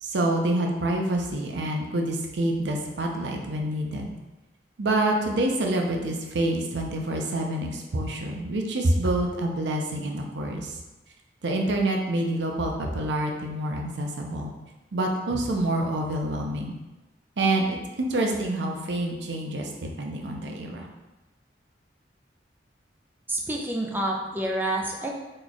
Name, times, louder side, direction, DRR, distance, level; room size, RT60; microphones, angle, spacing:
voice 1, 0.0-4.1 4.8-10.8 11.4-14.5 14.9-16.7 17.4-20.9, right 1 dB, 80° right, 1 dB, 0.6 m, -27 dB
voice 2, 23.3-25.1, right 1 dB, 10° right, -1 dB, 0.4 m, -28 dB
3.1 x 2.3 x 4.0 m, 1.1 s
head